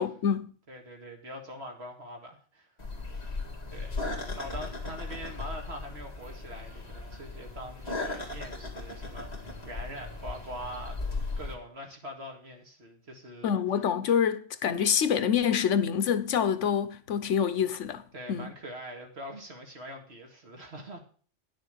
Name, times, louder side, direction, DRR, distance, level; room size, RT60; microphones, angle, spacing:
voice 1, 0.0-0.5 13.4-18.0 18.3-18.5, left 8 dB, 75° left, 1.2 m, -26 dB
voice 2, 0.7-2.7 3.7-11.0 11.4-13.6 18.1-21.0, equal, 60° right, 2.2 m, -43 dB
sound 1, 2.8-11.5, left 3 dB, 35° left, 2.1 m, -37 dB
10.0 x 6.6 x 6.7 m
omnidirectional pair, 1.2 m